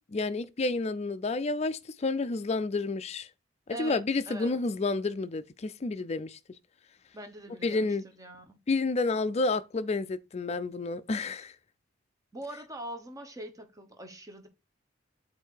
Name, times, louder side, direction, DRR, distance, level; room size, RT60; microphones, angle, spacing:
voice 1, 0.1-3.3 3.7-6.4 7.6-8.0 8.7-11.5, left 3 dB, 35° left, 0.4 m, -30 dB
voice 2, 3.7-4.5 7.1-8.6 12.3-14.5, right 1 dB, 20° right, 1.1 m, -43 dB
8.0 x 2.7 x 4.5 m
head